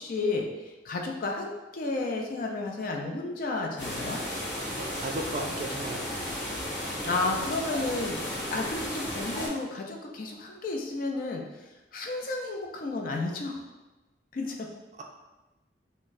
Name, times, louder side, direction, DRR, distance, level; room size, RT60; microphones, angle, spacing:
voice 1, 0.0-4.2 7.0-13.6 14.3-14.7, left 3 dB, 50° left, 1 dB, 0.4 m, -32 dB
sound 1, 3.8-9.5, equal, 10° left, 1.4 m, -34 dB
voice 2, 4.7-6.3, right 2 dB, 40° right, 2 dB, 0.3 m, -35 dB
4.2 x 2.0 x 2.5 m, 1.1 s
head